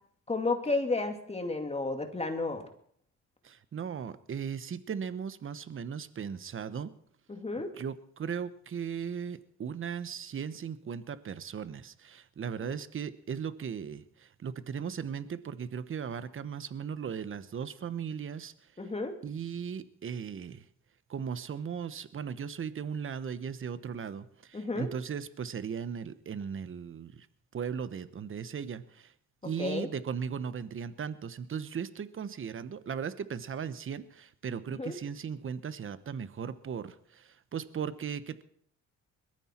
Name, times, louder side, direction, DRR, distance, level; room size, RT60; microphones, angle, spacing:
voice 1, 0.3-2.7 7.3-7.7 12.6-12.7 18.8-19.2 24.5-24.9 29.6-29.9 34.8-34.9, left 3 dB, 20° left, 5 dB, 2.4 m, -32 dB
voice 2, 3.4-6.9 7.7-18.5 19.2-20.6 21.1-27.3 27.5-29.1 29.4-38.4, right 7 dB, 45° right, 13 dB, 1.1 m, -37 dB
21.5 x 14.0 x 4.5 m, 0.64 s
cardioid pair, 90°, 30 cm